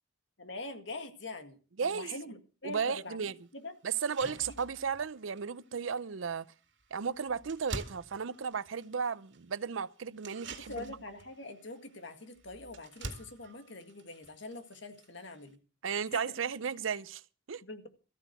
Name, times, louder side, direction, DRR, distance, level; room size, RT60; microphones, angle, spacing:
voice 1, 0.4-3.2 3.5-3.7 4.2-4.5 10.7-15.6 16.1-16.4 17.6-17.9, left 2 dB, 70° left, 1.9 m, -44 dB
voice 2, 1.8-2.2 2.6-3.3 3.8-6.5 6.9-11.0 15.8-17.2 17.5-17.6, right 6 dB, 90° right, 0.6 m, -34 dB
sound 1, 2.9-3.0 3.4-3.5 3.9-15.5, right 2 dB, 65° right, 2.2 m, -49 dB
14.0 x 9.1 x 6.6 m
head